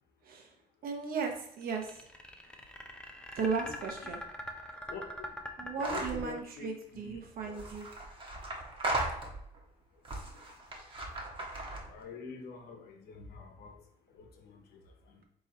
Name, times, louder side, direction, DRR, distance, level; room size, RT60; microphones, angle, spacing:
voice 1, 0.2-0.6 0.8-2.1 3.3-4.2 5.6-7.9, right 5 dB, 60° right, 3 dB, 1.0 m, -36 dB
sound 1, 1.6-6.7, equal, 5° left, 0.5 m, -43 dB
voice 2, 4.9-5.4 5.9-7.2 7.5-7.7 10.3-10.5 11.9-13.8 14.1-14.8 15.1-15.2, left 5 dB, 70° left, 3 dB, 1.0 m, -46 dB
sound 2, 5.8-6.2 7.4-9.6 10.0-12.0, right 2 dB, 30° right, 1.0 m, -37 dB
3.8 x 3.1 x 4.0 m, 0.74 s
cardioid pair, 110°, 17 cm